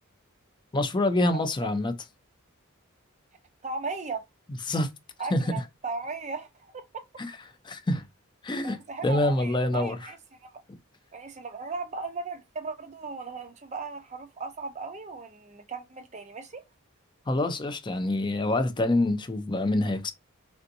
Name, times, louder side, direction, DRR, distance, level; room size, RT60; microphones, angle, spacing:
voice 1, 0.7-1.9 4.7-4.9 5.3-5.4 7.2-7.4 7.6-8.0 8.4-10.1 17.3-20.1, left 2 dB, 20° left, 0.5 m, -26 dB
voice 2, 1.3-1.7 3.6-4.2 5.2-6.8 8.6-10.2 10.4-10.5 11.1-16.6, right 4 dB, 35° right, 0.6 m, -37 dB
3.4 x 2.7 x 2.6 m
head